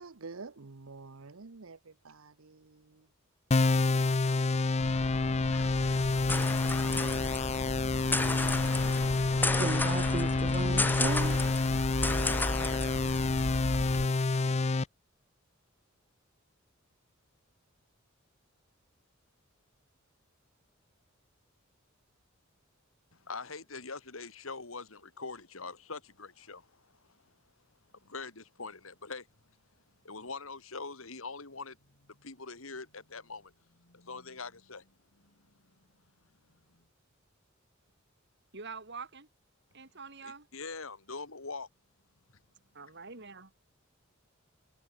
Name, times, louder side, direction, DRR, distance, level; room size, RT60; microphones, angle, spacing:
voice 1, 0.0-3.1, right 4 dB, 90° right, 1.0 m, -48 dB
sound 1, 3.5-14.8, left 3 dB, 30° left, 0.6 m, -28 dB
sound 2, 4.8-14.1, left 2 dB, 10° left, 1.8 m, -33 dB
voice 2, 9.6-11.4, right 3 dB, 35° right, 0.5 m, -35 dB
voice 3, 23.1-27.2 28.0-29.3 30.0-31.8 32.1-34.9 35.2-35.3 36.7-36.8 40.2-41.7, left 4 dB, 80° left, 2.9 m, -43 dB
voice 4, 38.5-39.3 39.7-40.5 42.7-43.5, right 4 dB, 55° right, 4.3 m, -45 dB
head